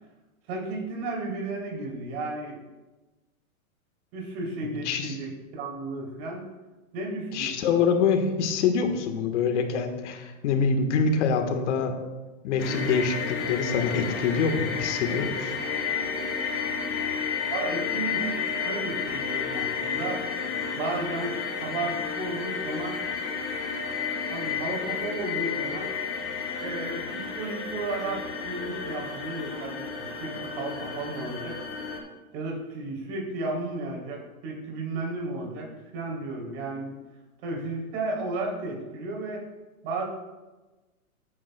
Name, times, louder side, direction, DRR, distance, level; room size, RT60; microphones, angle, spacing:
voice 1, 0.5-2.6 4.1-6.4 6.9-7.8 17.5-18.3 18.6-20.2 20.7-23.1 24.3-25.9 26.6-31.6 32.3-36.9 37.4-39.4 39.8-40.1, right 2 dB, 45° right, -1 dB, 3.1 m, -33 dB
voice 2, 4.6-5.2 7.3-12.0 12.4-15.5, left 5 dB, 55° left, 6 dB, 1.4 m, -25 dB
sound 1, 12.6-32.0, left 6 dB, 30° left, 1.7 m, -31 dB
14.0 x 8.6 x 2.2 m, 1.2 s
hypercardioid pair, 130°, 43 cm